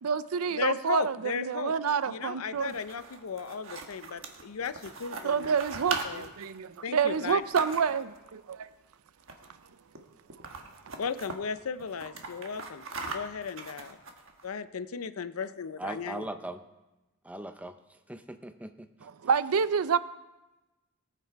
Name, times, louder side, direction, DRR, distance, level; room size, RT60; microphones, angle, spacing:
voice 1, 0.0-2.7 5.2-8.7 19.0-20.0, right 6 dB, 90° right, 15 dB, 0.5 m, -28 dB
voice 2, 0.6-1.7 2.1-5.5 6.0-6.3 6.8-7.4 11.0-14.0 14.4-16.3, left 6 dB, 85° left, 13 dB, 0.6 m, -36 dB
sound 1, 2.5-8.2 9.2-9.7 9.9-10.0 10.3-11.4 11.8-14.4, right 4 dB, 65° right, 1.3 m, -40 dB
voice 3, 15.8-16.6 17.2-17.7 18.1-18.9, right 1 dB, 5° right, 8 dB, 0.5 m, -39 dB
18.5 x 7.5 x 4.7 m, 1.1 s
head